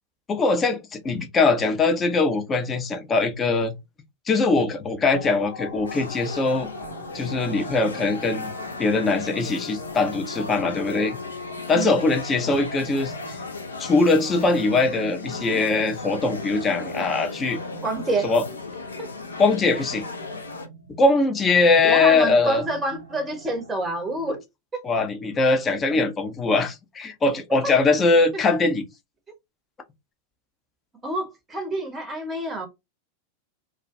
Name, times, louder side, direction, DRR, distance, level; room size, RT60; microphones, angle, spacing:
voice 1, 0.3-3.8 4.3-6.7 7.1-8.5 8.8-11.2 11.7-13.4 13.8-17.6 18.2-18.4 19.4-20.0 21.0-22.6 24.8-28.8, left 3 dB, 20° left, 0.5 m, -21 dB
sound 1, 5.1-12.7, left 5 dB, 45° left, 0.8 m, -41 dB
sound 2, 5.8-20.7, left 4 dB, 70° left, 0.5 m, -36 dB
sound 3, 6.7-24.4, right 4 dB, 80° right, 0.6 m, -43 dB
voice 2, 11.7-12.0 15.5-15.6 17.8-18.3 19.0-19.1 21.8-24.4 24.7-24.8 27.6-27.7 28.3-28.4 31.0-32.7, right 1 dB, 15° right, 0.7 m, -28 dB
2.3 x 2.2 x 2.5 m
figure-of-eight pair, 90°, 0 cm